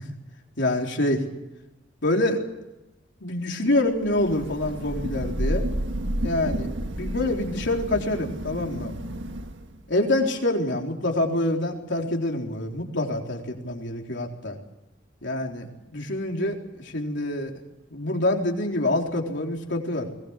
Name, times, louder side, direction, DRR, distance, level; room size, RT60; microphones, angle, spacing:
voice 1, 0.6-1.2 2.0-2.4 3.2-5.7 6.2-6.7 7.0-8.9 9.9-14.6 15.2-15.7 15.9-17.5 17.9-20.2, left 1 dB, 65° left, 1 dB, 4.0 m, -26 dB
Thunder / Rain, 4.0-9.8, right 1 dB, 65° right, 1.6 m, -31 dB
22.5 x 19.5 x 8.3 m, 0.97 s
head